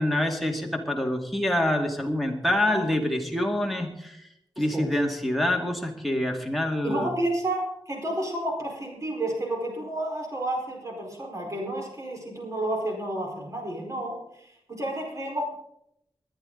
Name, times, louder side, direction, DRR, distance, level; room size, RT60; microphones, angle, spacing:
voice 1, 0.0-4.3 4.6-7.1, left 1 dB, ahead, 1 dB, 2.2 m, -26 dB
voice 2, 4.6-4.9 6.8-15.5, right 1 dB, 35° right, 0 dB, 4.6 m, -31 dB
20.5 x 10.5 x 3.9 m, 0.78 s
wide cardioid pair, 125°, 10 cm